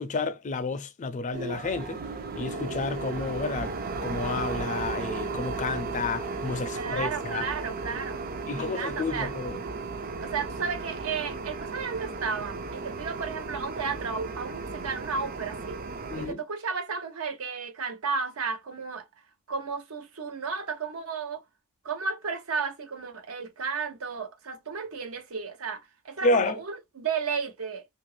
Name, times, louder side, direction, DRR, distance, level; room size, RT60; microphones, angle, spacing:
voice 1, 0.0-2.0 2.3-7.5 8.5-9.6 16.1-16.4 26.2-26.6, left 3 dB, 35° left, 0.4 m, -30 dB
sound 1, 1.3-16.3, right 3 dB, 40° right, 0.4 m, -35 dB
voice 2, 6.7-8.3 8.5-9.3 10.2-15.8 16.2-19.1 19.5-21.4 21.8-27.9, right 5 dB, 75° right, 0.8 m, -33 dB
2.8 x 2.5 x 3.1 m
head